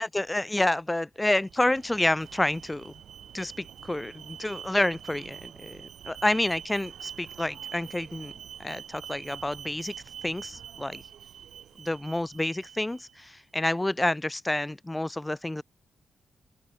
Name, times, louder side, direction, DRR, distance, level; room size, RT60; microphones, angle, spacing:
voice 1, 0.0-2.9 3.3-8.3 8.6-9.9 10.2-11.0 11.8-15.6, left 1 dB, 10° left, 0.4 m, -29 dB
Alarm, 1.4-13.3, right 9 dB, 80° right, 4.7 m, -45 dB
open air
cardioid pair, 115°, 0 cm